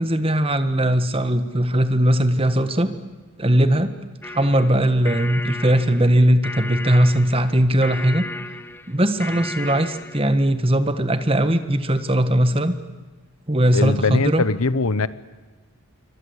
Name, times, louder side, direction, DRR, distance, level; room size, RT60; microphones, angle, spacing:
voice 1, 0.0-2.9 3.4-3.9 4.3-8.2 8.9-12.7 13.5-14.4, right 1 dB, 25° right, 10 dB, 1.6 m, -19 dB
sound 1, 4.2-10.3, left 2 dB, 10° left, 0.8 m, -34 dB
voice 2, 13.7-15.1, left 3 dB, 80° left, 16 dB, 1.1 m, -21 dB
27.5 x 24.5 x 8.2 m, 1.3 s
head